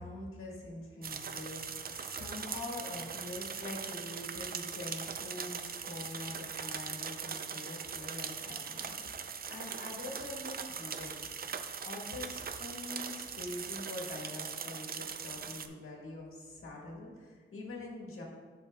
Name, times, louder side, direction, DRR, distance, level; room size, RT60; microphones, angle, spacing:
voice 1, 0.0-11.1 11.8-18.2, left 2 dB, 80° left, -2 dB, 1.6 m, -44 dB
sound 1, 1.0-15.7, right 6 dB, 45° right, 0.4 m, -41 dB
10.0 x 6.2 x 2.3 m, 1.5 s
wide cardioid pair, 125°, 21 cm